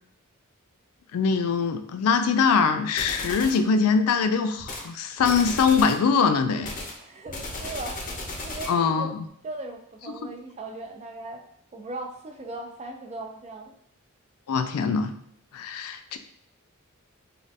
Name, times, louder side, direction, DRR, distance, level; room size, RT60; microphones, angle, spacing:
voice 1, 1.1-6.7 8.7-9.2 14.5-15.1 15.5-16.2, left 5 dB, 80° left, 8 dB, 0.3 m, -23 dB
sound 1, 3.0-3.6 4.6-4.9 5.2-6.0 6.6-8.8, left 2 dB, 40° left, 0.6 m, -35 dB
voice 2, 7.0-8.0 8.3-9.1 9.4-11.4 11.7-13.7, right 2 dB, 30° right, 3 dB, 0.4 m, -38 dB
3.3 x 2.4 x 2.6 m, 0.68 s
head